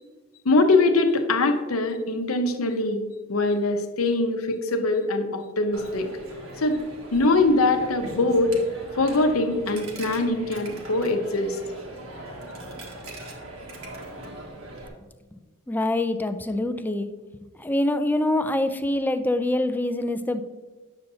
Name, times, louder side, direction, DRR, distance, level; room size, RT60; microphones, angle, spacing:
voice 1, 0.4-3.0 3.3-6.1 6.6-6.8 7.1-8.6 9.0-11.6, left 2 dB, 80° left, 6 dB, 0.8 m, -22 dB
Coin (dropping), 5.7-14.9, right 1 dB, 80° right, 1.5 m, -40 dB
voice 2, 15.7-17.1 17.6-20.4, left 1 dB, 10° left, 9 dB, 0.4 m, -25 dB
9.0 x 6.7 x 2.7 m, 1.3 s
head